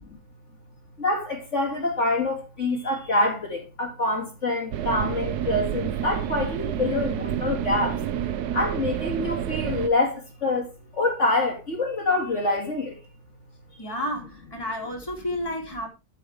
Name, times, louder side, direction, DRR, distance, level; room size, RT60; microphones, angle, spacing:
voice 1, 1.0-7.9 8.5-10.1 10.4-10.6 11.0-12.9, left 2 dB, 50° left, 2.5 m, -25 dB
sound 1, 4.7-9.9, right 10 dB, 85° right, 1.3 m, -29 dB
voice 2, 13.8-15.9, left 1 dB, 15° left, 2.8 m, -31 dB
10.0 x 9.0 x 3.4 m
omnidirectional pair, 1.7 m